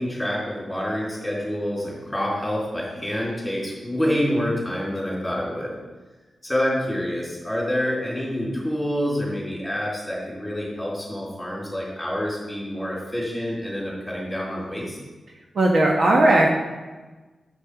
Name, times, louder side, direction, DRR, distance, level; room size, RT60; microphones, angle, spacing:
voice 1, 0.0-5.7 6.4-15.0, equal, 5° left, -5 dB, 3.8 m, -27 dB
voice 2, 15.5-16.5, right 1 dB, 50° right, 0 dB, 1.2 m, -17 dB
9.6 x 7.4 x 5.0 m, 1.2 s
wide cardioid pair, 145°, 0 cm